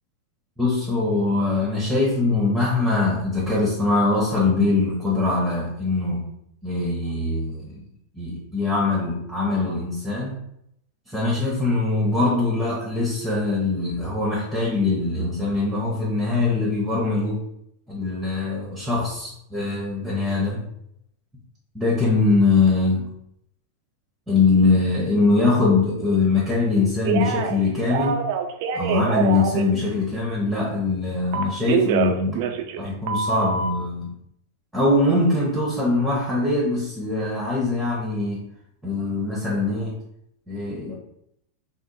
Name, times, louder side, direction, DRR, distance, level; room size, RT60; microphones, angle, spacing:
voice 1, 0.6-6.2 6.6-7.8 8.1-10.4 11.1-17.4 17.9-20.7 21.7-23.1 24.3-28.2 28.7-32.5 32.8-34.1 34.7-38.4 38.8-39.9 40.5-40.9, left 3 dB, 5° right, -5 dB, 0.9 m, -22 dB
Telephone, 27.0-27.6 27.9-29.6 31.3-32.8 33.1-33.7, right 6 dB, 50° right, 0.4 m, -24 dB
3.5 x 2.1 x 4.0 m, 0.76 s
figure-of-eight pair, 90°, 0 cm